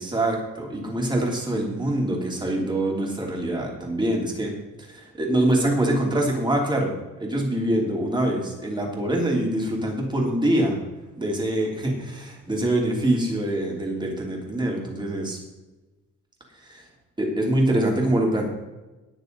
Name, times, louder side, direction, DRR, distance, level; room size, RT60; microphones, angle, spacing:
voice 1, 0.0-4.5 4.8-6.9 7.2-10.8 11.2-15.4 16.5-16.8 17.2-18.5, right 1 dB, 15° right, -1 dB, 3.2 m, -24 dB
20.5 x 6.9 x 4.0 m, 1.1 s
cardioid pair, 135°, 32 cm